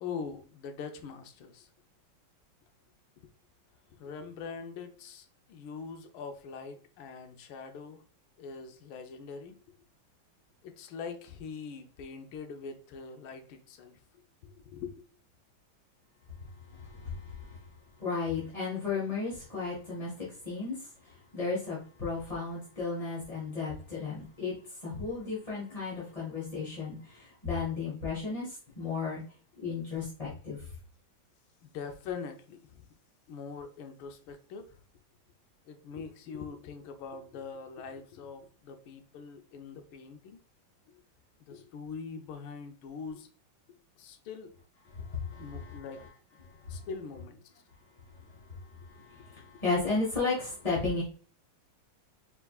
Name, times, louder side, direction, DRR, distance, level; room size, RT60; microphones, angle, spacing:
voice 1, 0.0-1.7 3.2-3.3 3.9-8.0 8.4-9.6 10.6-14.0 14.4-15.1 31.6-32.9 33.3-34.8 35.7-40.4 40.9-41.0 41.5-43.3 44.0-44.6 45.4-46.0 46.7-47.4, left 5 dB, 90° left, 1.5 m, -43 dB
voice 2, 16.4-17.7 18.0-29.2 29.6-30.7 44.9-45.8 46.4-46.9 48.2-51.0, left 4 dB, 25° left, 1.0 m, -35 dB
4.7 x 3.7 x 2.3 m
omnidirectional pair, 2.2 m